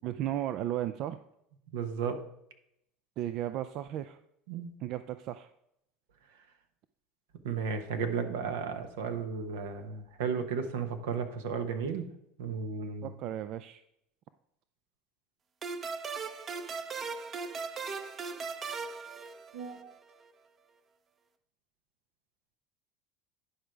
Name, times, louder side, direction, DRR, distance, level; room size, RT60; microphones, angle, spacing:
voice 1, 0.0-1.2 3.2-4.2 4.8-5.5 13.0-13.8, right 12 dB, 60° right, 11 dB, 0.4 m, -35 dB
voice 2, 1.7-2.2 4.5-4.7 7.4-12.1 12.4-13.1 19.5-19.9, right 6 dB, 80° right, 7 dB, 1.1 m, -34 dB
sound 1, 15.6-20.0, right 5 dB, 35° right, 0.8 m, -38 dB
10.0 x 5.0 x 4.6 m, 0.77 s
hypercardioid pair, 90°, 0 cm